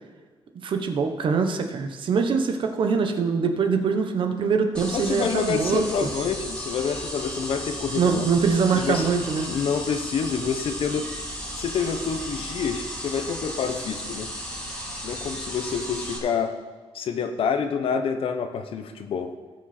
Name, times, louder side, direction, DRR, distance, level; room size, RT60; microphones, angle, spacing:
voice 1, 0.5-6.1 7.9-9.5, right 5 dB, 50° right, 6 dB, 1.1 m, -23 dB
sound 1, 4.7-16.2, equal, 10° left, 2.4 m, -35 dB
voice 2, 4.9-8.3 8.7-9.1 9.5-11.0 11.6-14.3 15.0-16.6 16.9-19.3, left 6 dB, 60° left, 8 dB, 0.9 m, -27 dB
18.0 x 6.3 x 4.4 m, 1.4 s
wide cardioid pair, 165°, 11 cm